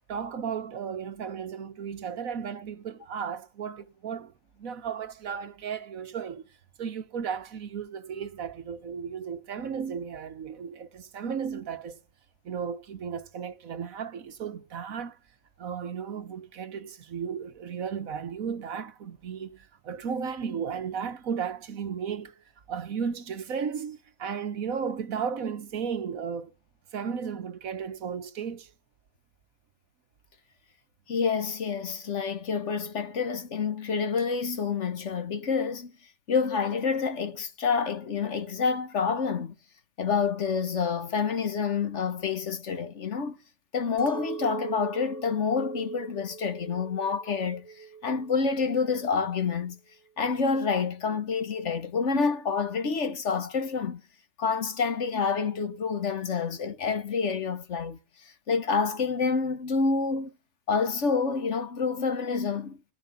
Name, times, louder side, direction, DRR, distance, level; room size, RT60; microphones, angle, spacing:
voice 1, 0.1-4.3 4.6-6.4 6.8-12.0 12.4-15.2 15.6-26.5 26.9-28.7, right 7 dB, 90° right, 1.6 m, -34 dB
voice 2, 31.1-35.9 36.3-39.5 40.0-43.4 43.7-49.8 50.2-54.0 54.4-60.3 60.7-62.8, left 5 dB, 60° left, 1.6 m, -28 dB
Chink clink, 44.0-48.4 48.7-49.3, right 6 dB, 10° right, 1.5 m, -41 dB
18.5 x 13.0 x 5.9 m
omnidirectional pair, 1.4 m